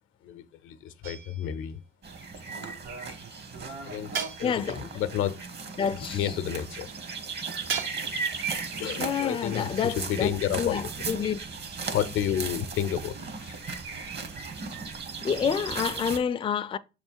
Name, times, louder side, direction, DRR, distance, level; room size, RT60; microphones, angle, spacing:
voice 1, 0.2-1.8 3.8-5.4 5.9-6.9 8.8-10.8 11.9-13.2 13.4-13.6, left 10 dB, 85° left, 0.6 m, -31 dB
sound 1, 1.0-1.7 4.1-4.9 7.7-8.4, right 6 dB, 80° right, 0.9 m, -35 dB
sound 2, 2.0-16.2, right 5 dB, 55° right, 1.3 m, -36 dB
voice 2, 4.4-4.8 5.8-6.4 9.0-11.4 15.2-16.8, left 7 dB, 25° left, 0.3 m, -28 dB
6.6 x 3.2 x 4.5 m
cardioid pair, 90°, 20 cm